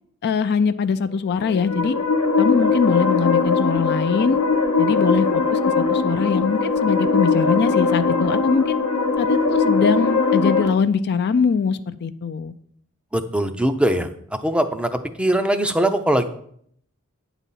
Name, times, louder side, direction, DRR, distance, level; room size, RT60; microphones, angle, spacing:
voice 1, 0.2-2.0 2.4-4.4 4.8-8.8 9.2-12.5, left 5 dB, 45° left, 12 dB, 0.4 m, -22 dB
sound 1, 1.3-10.7, left 4 dB, 75° left, 0.9 m, -20 dB
voice 2, 13.1-14.1 14.4-16.2, right 1 dB, 5° right, 8 dB, 0.5 m, -21 dB
9.2 x 4.0 x 7.3 m, 0.65 s
head